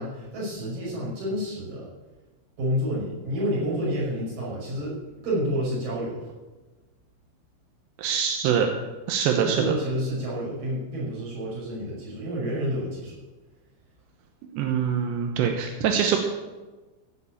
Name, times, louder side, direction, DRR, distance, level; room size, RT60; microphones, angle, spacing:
voice 1, 0.0-1.9 2.6-6.3 9.4-13.2, equal, 45° right, -7 dB, 7.3 m, -29 dB
voice 2, 8.0-8.7 9.1-9.6 14.5-16.2, right 7 dB, 75° right, 3 dB, 2.8 m, -24 dB
15.5 x 6.7 x 8.7 m, 1.2 s
omnidirectional pair, 5.9 m